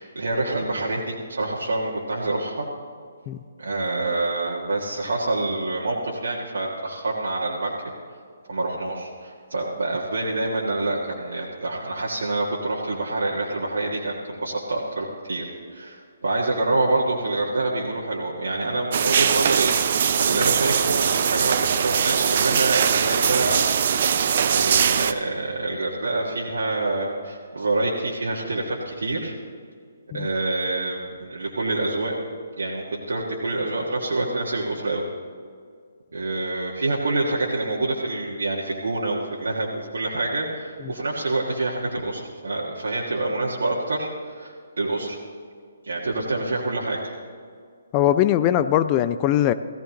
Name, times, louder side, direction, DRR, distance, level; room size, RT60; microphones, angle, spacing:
voice 1, 0.0-2.7 3.6-7.9 8.5-23.7 24.5-29.3 30.1-32.2 32.6-35.1 36.1-45.2 45.8-47.1, right 2 dB, 65° right, -4 dB, 1.7 m, -27 dB
sound 1, 18.9-25.1, right 7 dB, 50° right, 0.6 m, -21 dB
voice 2, 47.9-49.5, left 12 dB, 25° left, 12 dB, 0.4 m, -20 dB
16.5 x 16.0 x 3.0 m, 2.1 s
figure-of-eight pair, 135°, 0 cm